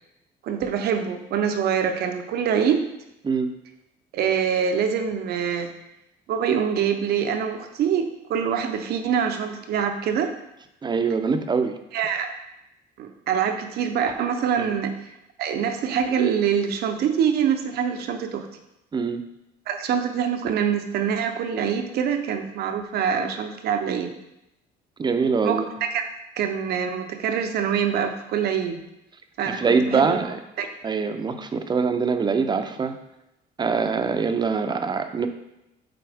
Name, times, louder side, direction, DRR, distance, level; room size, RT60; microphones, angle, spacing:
voice 1, 0.4-2.9 4.1-5.7 6.3-10.3 11.9-12.3 13.0-15.0 15.4-18.5 19.7-24.1 25.4-26.1 26.4-28.8 29.4-30.2 30.6-30.7, right 7 dB, 70° right, 6 dB, 0.8 m, -25 dB
voice 2, 10.8-11.8 14.6-14.7 18.9-19.2 25.0-25.7 29.4-30.4 30.8-32.9 33.6-35.3, right 5 dB, 25° right, 7 dB, 0.6 m, -23 dB
7.7 x 4.2 x 3.5 m, 0.88 s
cardioid pair, 110°, 17 cm